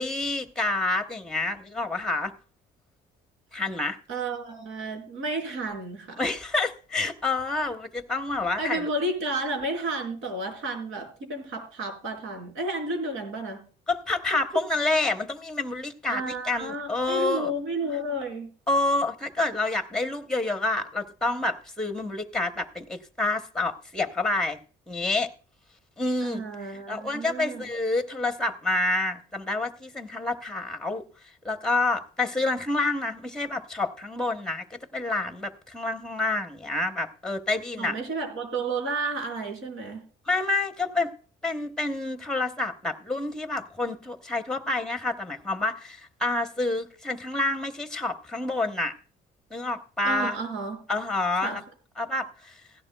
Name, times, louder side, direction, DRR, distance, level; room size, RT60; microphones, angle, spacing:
voice 1, 0.0-2.3 3.5-4.0 6.2-8.9 13.9-17.5 18.7-24.6 24.9-25.3 26.0-26.4 26.9-31.0 31.4-34.6 34.9-37.9 40.3-41.1 41.4-48.9 49.5-50.4 50.9-51.6 52.0-52.6, left 2 dB, 5° left, 0.9 m, -28 dB
voice 2, 4.1-6.2 8.6-13.7 16.1-18.5 26.2-27.7 37.8-40.1 50.0-50.8 51.4-51.6, right 2 dB, 85° right, 4.2 m, -32 dB
16.0 x 11.5 x 2.2 m
cardioid pair, 125°, 21 cm